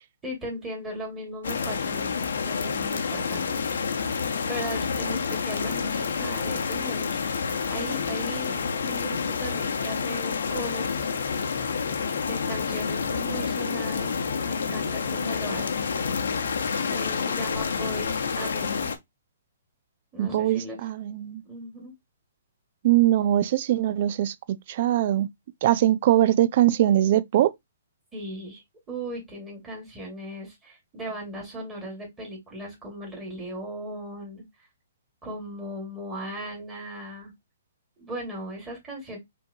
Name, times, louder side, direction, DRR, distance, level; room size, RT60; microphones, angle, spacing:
voice 1, 0.2-2.2 2.4-3.6 4.5-11.1 12.2-15.9 16.9-18.9 20.1-20.9 21.4-21.9 28.1-28.6 28.9-34.4 35.2-37.3 38.0-39.2, right 1 dB, 10° right, 2.3 m, -37 dB
sound 1, 1.4-19.0, left 5 dB, 80° left, 0.9 m, -28 dB
voice 2, 20.2-21.4 22.8-24.3 24.7-25.3 25.6-27.5, right 13 dB, 45° right, 0.5 m, -21 dB
5.3 x 3.0 x 2.7 m
hypercardioid pair, 155°, 0 cm